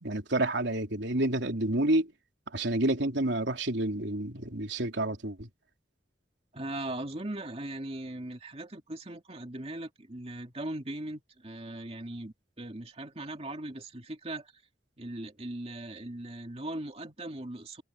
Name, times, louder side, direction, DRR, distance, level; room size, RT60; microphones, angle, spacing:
voice 1, 0.0-2.1 2.5-5.5, right 1 dB, 75° right, 3.3 m, -29 dB
voice 2, 6.5-14.5 15.0-17.8, right 1 dB, 35° right, 2.4 m, -39 dB
head